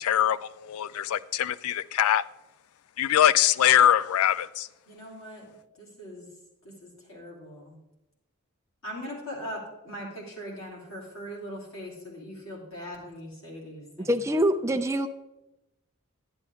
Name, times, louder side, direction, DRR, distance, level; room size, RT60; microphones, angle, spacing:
voice 1, 0.0-2.2 3.0-4.7, left 10 dB, 80° left, 0.4 m, -23 dB
voice 2, 4.9-5.5 5.8-6.3 6.6-7.8 8.8-14.1, equal, 60° left, 3.3 m, -40 dB
voice 3, 14.0-15.1, equal, 15° right, 0.3 m, -25 dB
10.5 x 9.7 x 3.5 m
head